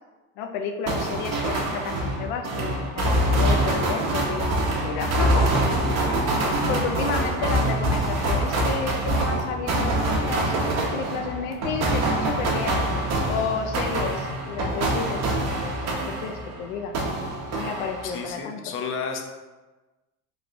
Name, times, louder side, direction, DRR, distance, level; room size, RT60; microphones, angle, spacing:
voice 1, 0.4-5.6 6.5-12.8 13.3-15.2 16.1-16.9 17.5-18.7, left 6 dB, 85° left, 5 dB, 0.5 m, -31 dB
sound 1, 0.9-16.6 16.9-18.3, right 1 dB, 45° right, 0.8 m, -25 dB
voice 2, 5.9-6.2 18.0-19.3, left 5 dB, 35° left, 4 dB, 0.5 m, -32 dB
3.2 x 2.3 x 3.8 m, 1.2 s
supercardioid pair, 115°, 35 cm